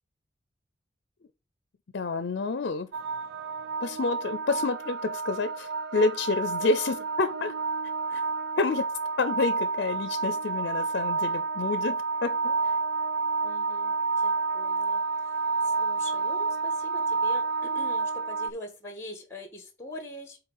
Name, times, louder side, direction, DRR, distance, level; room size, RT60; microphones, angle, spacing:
voice 1, 1.9-2.9 3.8-7.5 8.1-8.2 8.6-8.8 9.2-12.8, left 3 dB, 60° left, 0.5 m, -29 dB
sound 1, 2.9-18.5, right 4 dB, 60° right, 0.6 m, -29 dB
voice 2, 13.4-13.9 14.2-15.0 15.6-20.4, left 1 dB, 15° left, 1.4 m, -43 dB
5.6 x 4.0 x 5.5 m
head